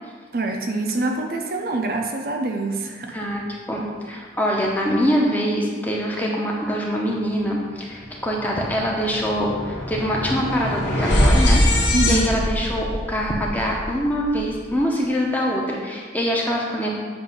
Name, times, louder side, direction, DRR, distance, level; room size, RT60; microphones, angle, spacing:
voice 1, 0.3-3.1 11.9-12.3, right 2 dB, 50° right, 3 dB, 0.5 m, -25 dB
voice 2, 3.1-3.4 3.7-16.9, equal, 10° left, -2 dB, 0.7 m, -24 dB
sound 1, 7.9-8.1 8.4-14.6, left 1 dB, 70° left, 1.3 m, -23 dB
7.7 x 2.7 x 5.3 m, 1.5 s
head